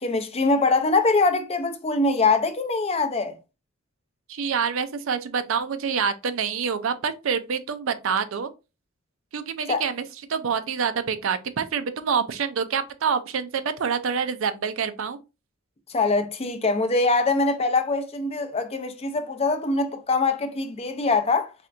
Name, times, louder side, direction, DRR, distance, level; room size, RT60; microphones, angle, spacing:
voice 1, 0.0-3.3 9.7-9.8 15.9-21.5, left 3 dB, 30° left, 0.5 m, -23 dB
voice 2, 4.3-8.5 9.3-10.0 10.3-15.2, right 6 dB, 65° right, 0.5 m, -26 dB
4.2 x 3.3 x 2.5 m
head